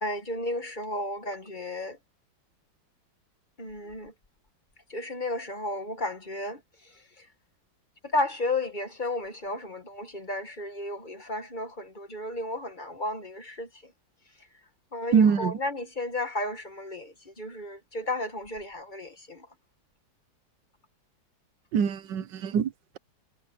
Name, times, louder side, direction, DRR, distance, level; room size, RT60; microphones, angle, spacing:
voice 1, 0.0-2.0 3.6-4.1 4.9-7.3 8.0-13.9 14.9-19.5, left 2 dB, 25° left, 1.4 m, -33 dB
voice 2, 15.1-15.6 21.7-23.0, right 7 dB, 70° right, 1.5 m, -24 dB
omnidirectional pair, 2.0 m